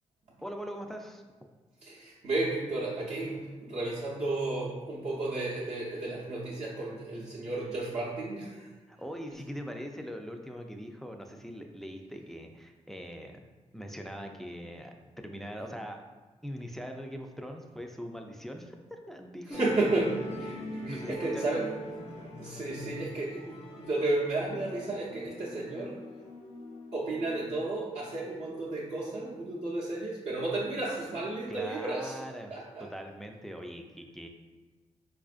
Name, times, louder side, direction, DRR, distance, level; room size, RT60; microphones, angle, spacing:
voice 1, 0.4-1.2 8.9-13.4 13.7-16.0 16.4-19.8 20.5-20.6 20.9-21.6 31.5-34.3, equal, 5° left, 4 dB, 0.3 m, -41 dB
voice 2, 1.8-8.7 19.5-21.7 22.4-26.0 26.9-32.2 32.5-32.9, right 2 dB, 60° right, -6 dB, 0.6 m, -33 dB
Musical instrument, 19.5-26.1, left 1 dB, 55° left, 0.5 m, -43 dB
sound 1, 24.5-28.9, left 2 dB, 85° left, 1.0 m, -49 dB
4.2 x 2.5 x 2.4 m, 1.3 s
cardioid pair, 85°, 13 cm